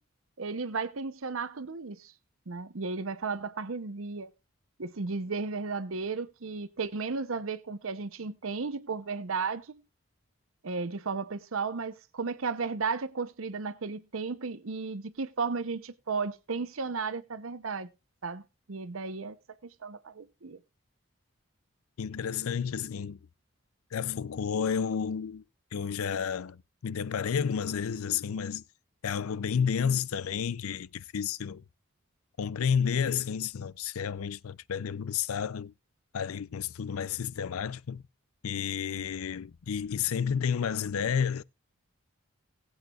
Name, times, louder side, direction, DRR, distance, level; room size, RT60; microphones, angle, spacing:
voice 1, 0.4-2.1 2.5-4.3 4.8-9.8 10.6-17.9 18.2-18.4 18.7-19.4 19.6-20.6, right 4 dB, 75° right, 0.8 m, -34 dB
voice 2, 22.0-23.2 23.9-25.4 25.7-28.6 29.0-31.6 32.4-35.7 36.1-38.0 38.4-41.4, left 7 dB, 90° left, 0.5 m, -31 dB
19.0 x 8.1 x 2.4 m
head